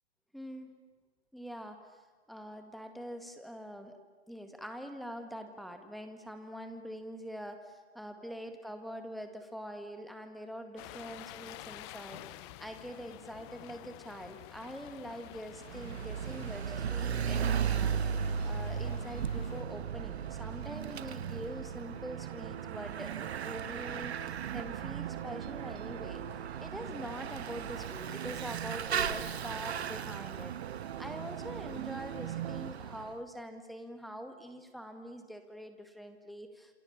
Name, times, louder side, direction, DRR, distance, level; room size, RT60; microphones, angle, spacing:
voice 1, 0.3-0.7 1.3-2.0 2.3-4.0 4.3-30.5 31.0-36.7, equal, ahead, 6 dB, 2.0 m, -44 dB
sound 1, 10.8-19.6, left 16 dB, 25° left, 0.8 m, -50 dB
Bicycle / Mechanisms, 15.5-33.1, right 7 dB, 75° right, 1.6 m, -37 dB
sound 2, 18.0-32.7, right 14 dB, 40° right, 1.0 m, -44 dB
28.0 x 27.0 x 7.4 m, 1.4 s
hypercardioid pair, 145°, 32 cm